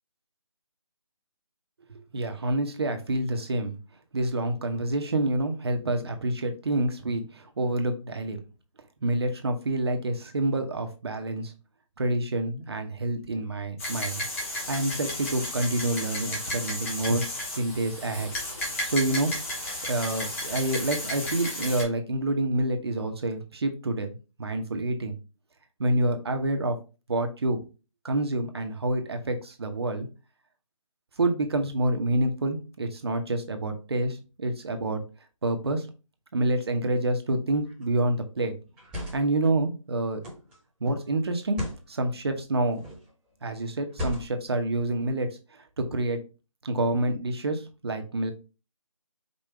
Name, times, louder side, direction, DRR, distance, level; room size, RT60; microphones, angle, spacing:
voice 1, 2.1-3.8 4.1-8.4 9.0-11.5 12.0-14.2 14.7-17.2 17.6-18.3 18.8-19.6 19.8-25.1 25.8-26.8 27.1-27.6 28.0-30.1 31.2-35.0 35.4-35.9 36.3-38.5 39.1-40.2 40.8-41.6 41.9-42.9 43.4-46.2 46.6-48.3, right 2 dB, 50° right, 5 dB, 1.0 m, -28 dB
sound 1, 13.8-21.8, left 1 dB, 25° left, 1.4 m, -33 dB
sound 2, 37.5-37.8 38.7-39.4 40.2-40.6 41.4-41.8 42.7-43.1 43.9-44.5, left 1 dB, 5° right, 1.2 m, -36 dB
5.2 x 2.6 x 3.4 m, 0.31 s
figure-of-eight pair, 165°, 17 cm